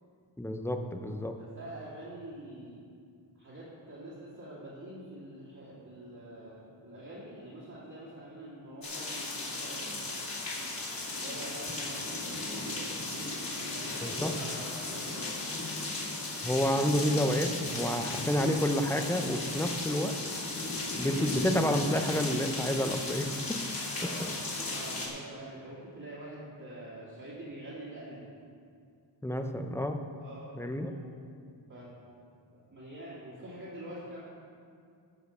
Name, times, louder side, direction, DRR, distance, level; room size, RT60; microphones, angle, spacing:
voice 1, 0.4-1.3 14.0-14.3 16.4-20.1 21.0-23.6 29.2-30.0 30.6-30.9, equal, 5° left, 5 dB, 0.5 m, -29 dB
voice 2, 1.3-2.8 3.4-10.2 11.2-15.5 23.9-28.2 30.2-31.1 31.7-31.9 32.5-34.2, right 1 dB, 40° right, -11 dB, 2.7 m, -45 dB
sound 1, 8.8-25.1, left 2 dB, 45° left, 2.2 m, -36 dB
13.5 x 5.1 x 6.6 m, 2.3 s
wide cardioid pair, 160°, 47 cm